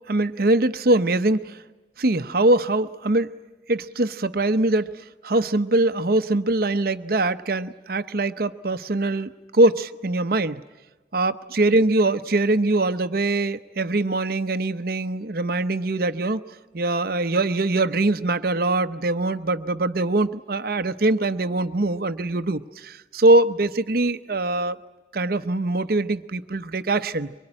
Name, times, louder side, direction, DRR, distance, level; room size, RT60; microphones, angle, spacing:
voice 1, 0.1-1.6 2.0-3.3 3.7-10.6 11.1-16.4 16.7-24.8 25.1-27.3, right 2 dB, 55° right, 11 dB, 0.8 m, -22 dB
24.0 x 23.5 x 9.9 m, 1.2 s
head